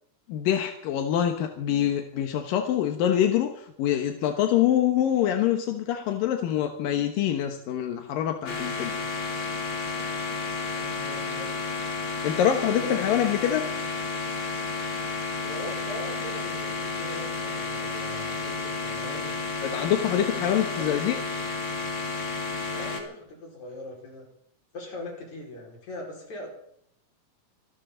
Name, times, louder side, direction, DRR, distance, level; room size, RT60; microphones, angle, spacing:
voice 1, 0.3-9.0 12.2-13.7 19.6-21.2, left 10 dB, 85° left, 5 dB, 2.9 m, -25 dB
sound 1, 8.5-23.0, left 3 dB, 40° left, 3.1 m, -31 dB
voice 2, 10.7-11.5 12.7-13.0 15.4-19.4 20.2-21.1 22.7-24.3 24.7-26.5, left 1 dB, 55° left, -1 dB, 6.3 m, -40 dB
26.0 x 12.5 x 4.0 m, 0.71 s
omnidirectional pair, 3.9 m